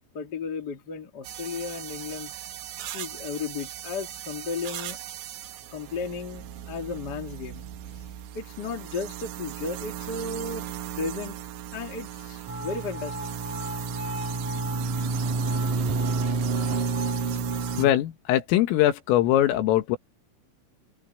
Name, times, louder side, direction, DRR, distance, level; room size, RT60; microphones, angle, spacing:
voice 1, 0.1-2.3 2.9-5.0 5.7-7.7 8.3-10.6 11.0-11.4 11.7-13.3, left 4 dB, 40° left, 1.4 m, -34 dB
sound 1, 1.2-17.9, right 12 dB, 70° right, 3.4 m, -38 dB
sound 2, 12.5-17.9, right 3 dB, 45° right, 3.5 m, -29 dB
voice 2, 17.8-20.0, left 13 dB, 85° left, 4.3 m, -22 dB
omnidirectional pair, 5.8 m